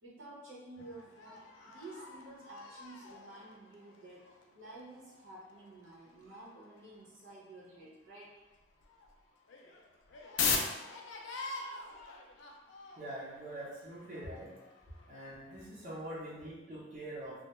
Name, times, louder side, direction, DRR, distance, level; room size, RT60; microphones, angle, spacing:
voice 1, 0.0-1.4 1.7-4.2 4.5-8.3, right 2 dB, 70° right, -6 dB, 0.8 m, -51 dB
sound 1, 0.8-7.5 7.8-7.9 8.2-16.4, left 5 dB, 65° left, 0.3 m, -42 dB
voice 2, 13.0-14.5 15.1-17.4, right 1 dB, 35° right, -9 dB, 0.7 m, -44 dB
2.2 x 2.1 x 2.9 m, 1.1 s
head